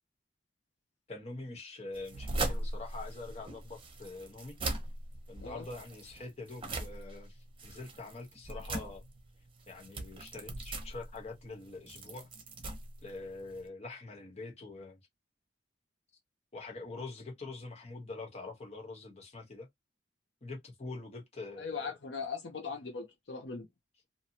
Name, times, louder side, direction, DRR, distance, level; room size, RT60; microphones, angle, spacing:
voice 1, 1.1-4.6 5.3-9.1 9.7-12.3 13.0-15.0 16.5-19.7 20.4-21.9, left 3 dB, 35° left, 1.1 m, -45 dB
sound 1, 1.9-13.7, right 2 dB, 30° right, 0.8 m, -40 dB
voice 2, 21.6-23.7, left 5 dB, 70° left, 0.7 m, -39 dB
2.7 x 2.2 x 2.8 m
head